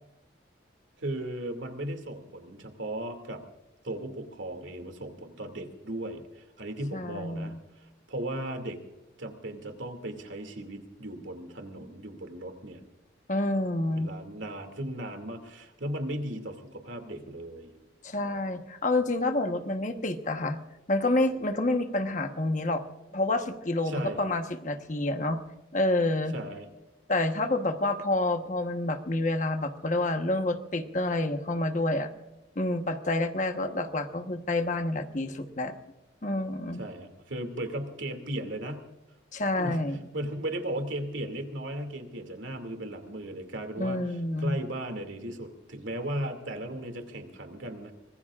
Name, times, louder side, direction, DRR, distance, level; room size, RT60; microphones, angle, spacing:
voice 1, 1.0-3.4 3.8-8.8 9.2-12.8 14.0-17.7 23.9-24.2 26.3-26.7 36.8-38.8 39.6-39.8 40.1-47.9, right 1 dB, 80° right, 6 dB, 2.4 m, -36 dB
voice 2, 6.9-7.6 13.3-14.1 18.0-20.6 20.9-22.8 23.1-25.4 25.7-26.3 27.1-32.1 32.6-35.7 36.2-36.8 39.3-40.0 43.8-44.6, left 2 dB, 40° left, 7 dB, 1.2 m, -28 dB
24.5 x 20.5 x 2.5 m, 0.98 s
head